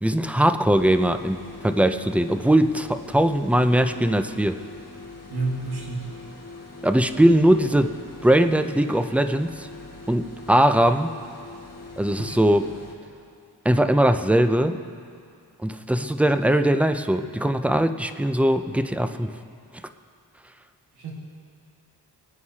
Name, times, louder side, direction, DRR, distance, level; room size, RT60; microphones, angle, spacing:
voice 1, 0.0-4.6 6.8-8.0 8.2-9.7 10.1-11.1 12.0-12.6 13.6-14.8 15.6-19.3, right 1 dB, 5° right, 8 dB, 0.4 m, -20 dB
sound 1, 0.7-13.0, left 3 dB, 35° left, 1.9 m, -42 dB
voice 2, 5.3-6.1 12.2-12.4 20.9-21.1, right 3 dB, 65° right, -3 dB, 2.0 m, -30 dB
21.5 x 9.6 x 2.8 m, 2.3 s
cardioid pair, 90°, 41 cm